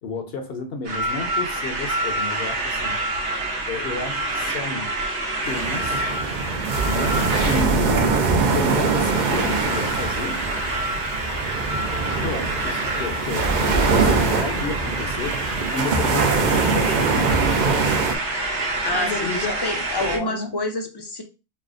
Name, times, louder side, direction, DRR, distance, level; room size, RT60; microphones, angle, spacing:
voice 1, 0.0-3.0 3.7-4.9 5.5-6.1 6.8-8.2 8.5-10.4 12.2-15.4 15.7-18.0 18.9-19.6 20.0-20.5, left 3 dB, 65° left, 1.0 m, -31 dB
sound 1, 0.8-20.2, right 2 dB, 90° right, 1.0 m, -28 dB
sound 2, 5.5-18.2, right 4 dB, 55° right, 0.6 m, -23 dB
voice 2, 18.6-21.2, left 1 dB, 40° left, 0.4 m, -28 dB
5.5 x 2.1 x 2.4 m
omnidirectional pair, 1.1 m